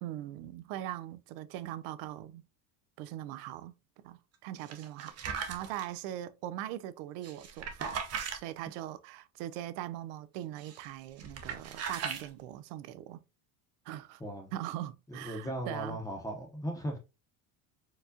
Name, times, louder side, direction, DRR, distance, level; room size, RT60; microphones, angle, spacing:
voice 1, 0.0-2.4 3.0-3.7 4.0-8.0 8.3-13.2 13.9-14.2 14.5-16.0, right 13 dB, 75° right, 0.5 m, -41 dB
sound 1, 4.7-5.8 7.2-8.4 10.6-10.9 11.2-12.3, right 6 dB, 35° right, 0.7 m, -38 dB
voice 2, 14.2-14.5 15.1-17.0, equal, 10° left, 0.8 m, -37 dB
4.6 x 2.4 x 2.7 m
cardioid pair, 130°, 45 cm